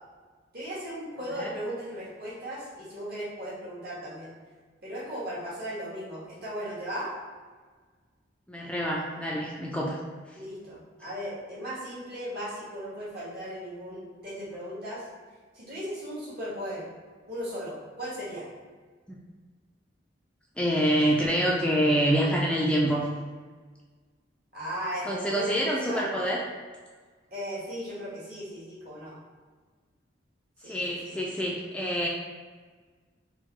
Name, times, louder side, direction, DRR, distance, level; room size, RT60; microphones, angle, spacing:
voice 1, 0.5-4.3 4.8-7.1 10.3-15.0 15.5-16.9 17.3-18.5 24.5-26.1 27.3-29.2 30.6-31.2, equal, 55° right, -8 dB, 1.5 m, -37 dB
voice 2, 8.5-10.0 19.1-19.2 20.6-23.1 25.0-26.4 30.6-32.1, equal, 5° left, -3 dB, 0.3 m, -26 dB
3.6 x 2.6 x 3.1 m, 1.5 s
head